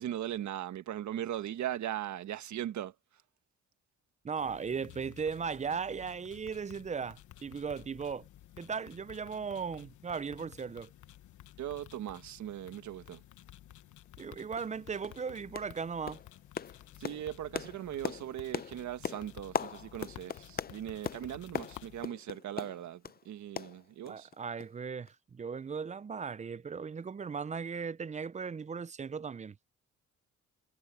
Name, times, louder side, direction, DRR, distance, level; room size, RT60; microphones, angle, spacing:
voice 1, 0.0-2.9 11.6-13.2 17.0-24.3, right 11 dB, 70° right, 1.5 m, -39 dB
voice 2, 4.2-8.3 8.6-10.9 14.2-16.2 24.1-29.6, right 6 dB, 25° right, 0.5 m, -37 dB
sound 1, 4.4-22.1, left 13 dB, 75° left, 1.3 m, -53 dB
sound 2, 14.0-14.1 14.6-14.7 15.0-15.2 15.5-15.8 16.1-23.2 23.6-24.3 24.6-24.7 25.1-25.2, left 7 dB, 30° left, 0.7 m, -40 dB
cardioid pair, 90°, 30 cm